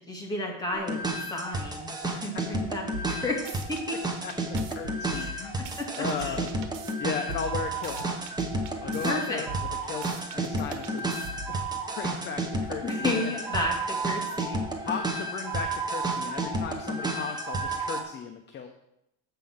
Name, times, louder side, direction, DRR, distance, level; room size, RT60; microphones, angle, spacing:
voice 1, 0.1-4.0 5.1-5.3 5.6-6.4 9.0-9.4 12.8-14.6, left 2 dB, 10° left, -1 dB, 2.0 m, -33 dB
sound 1, 0.7-18.0, right 2 dB, 10° right, 0.9 m, -31 dB
sound 2, 2.9-3.8 4.3-6.9 7.3-9.1 9.5-11.6, right 2 dB, 85° right, 1.4 m, -40 dB
voice 2, 4.2-5.6 6.0-6.5 7.0-8.1 8.8-9.5 9.8-13.3 14.8-18.7, left 6 dB, 25° left, 5 dB, 0.6 m, -36 dB
7.6 x 5.6 x 7.1 m, 0.82 s
cardioid pair, 150°, 44 cm